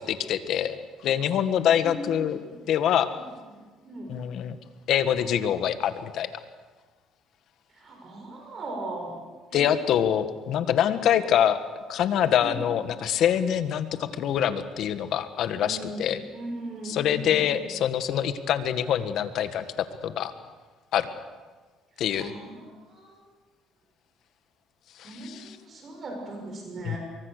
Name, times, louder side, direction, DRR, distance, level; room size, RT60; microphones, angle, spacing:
voice 1, 0.0-2.4 2.7-3.1 4.1-4.6 4.9-6.3 9.5-11.6 11.9-16.2 16.8-19.6 20.0-20.3 20.9-21.1 22.0-22.3 25.0-25.6 26.8-27.0, left 9 dB, 65° left, 10 dB, 1.7 m, -25 dB
voice 2, 1.8-2.5 3.1-3.2 3.8-4.1 7.7-9.2 9.5-9.7 12.4-12.5 15.5-17.4 22.2-23.2 25.0-27.0, right 2 dB, 40° right, 1 dB, 6.7 m, -38 dB
24.5 x 23.0 x 6.7 m, 1.3 s
cardioid pair, 110°, 0 cm